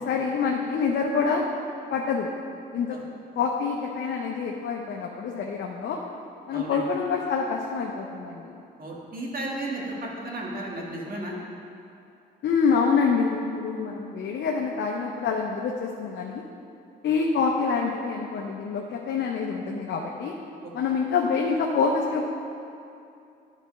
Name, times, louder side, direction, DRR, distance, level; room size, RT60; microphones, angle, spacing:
voice 1, 0.0-1.4 1.9-2.3 2.7-3.0 3.4-6.0 6.5-8.6 12.4-16.4 17.0-20.3 20.7-22.3, left 5 dB, 65° left, 0 dB, 0.7 m, -26 dB
voice 2, 6.5-6.8 8.8-11.4 20.6-20.7, right 1 dB, 45° right, -2 dB, 1.6 m, -34 dB
9.9 x 4.1 x 5.5 m, 2.6 s
cardioid pair, 90°, 20 cm